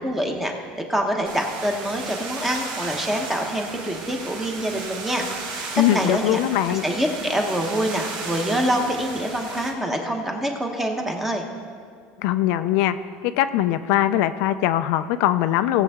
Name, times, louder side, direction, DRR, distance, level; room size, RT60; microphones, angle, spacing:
voice 1, 0.0-5.6 5.9-6.4 6.7-11.5, right 1 dB, 5° right, 2 dB, 1.0 m, -26 dB
sound 1, 1.3-9.7, right 3 dB, 50° right, 1.9 m, -35 dB
voice 2, 5.8-6.8 12.2-13.0 13.2-15.8, left 13 dB, 65° left, 10 dB, 0.4 m, -21 dB
18.0 x 7.3 x 3.6 m, 2.1 s
cardioid pair, 160°, 4 cm